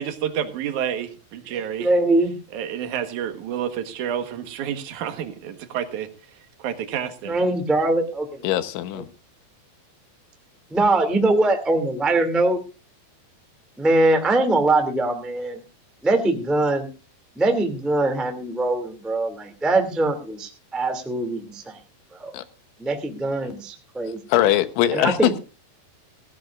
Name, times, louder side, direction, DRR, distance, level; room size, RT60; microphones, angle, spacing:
voice 1, 0.0-1.9 2.5-6.1 6.6-7.4, right 9 dB, 65° right, 2.1 m, -29 dB
voice 2, 1.8-2.3 7.3-8.4 10.7-12.6 13.8-15.6 16.0-16.9 17.3-21.8 22.1-22.3 22.8-24.2 24.9-25.3, right 2 dB, ahead, 0.4 m, -22 dB
voice 3, 8.4-9.1 22.3-22.4 23.4-23.5 24.3-25.4, left 12 dB, 90° left, 3.5 m, -21 dB
18.0 x 16.5 x 2.5 m
omnidirectional pair, 5.3 m